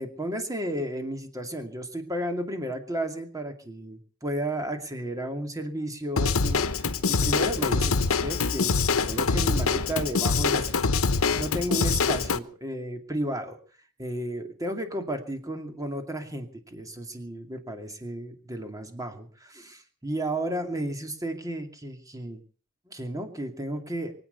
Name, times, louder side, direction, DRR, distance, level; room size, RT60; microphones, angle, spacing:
voice 1, 0.0-10.8 11.1-13.6 14.0-22.4 22.9-24.1, right 1 dB, 15° right, 5 dB, 2.5 m, -33 dB
Drum kit / Drum, 6.2-12.4, left 4 dB, 80° left, 1.0 m, -24 dB
23.5 x 9.0 x 6.8 m, 0.43 s
head